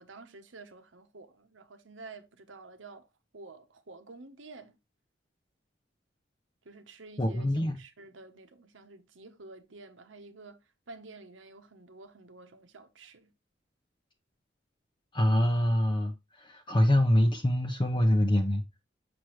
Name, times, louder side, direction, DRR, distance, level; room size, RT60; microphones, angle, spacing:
voice 1, 0.0-3.1 3.3-4.8 6.6-7.5 7.7-10.6 10.9-13.3, right 3 dB, 90° right, 1.0 m, -50 dB
voice 2, 7.2-7.8 15.1-18.7, left 1 dB, 25° left, 0.7 m, -25 dB
6.2 x 6.1 x 3.1 m
head